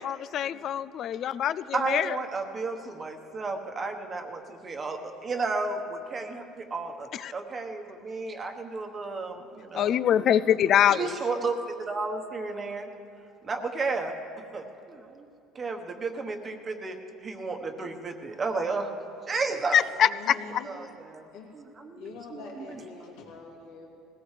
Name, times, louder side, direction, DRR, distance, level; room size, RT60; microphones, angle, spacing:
voice 1, 0.0-2.2 7.1-7.3 9.7-11.1 19.7-20.6, left 10 dB, 40° left, 16 dB, 0.3 m, -24 dB
voice 2, 1.7-10.0 10.9-12.9 13.4-14.1 14.5-15.3 15.5-18.9 19.2-19.8 20.6-21.3 21.5-22.8, right 3 dB, 20° right, 5 dB, 1.1 m, -33 dB
voice 3, 20.0-20.7 21.3-21.5 21.9-23.9, left 4 dB, 75° left, -3 dB, 2.7 m, -44 dB
21.5 x 17.5 x 3.3 m, 2.8 s
cardioid pair, 155°, 0 cm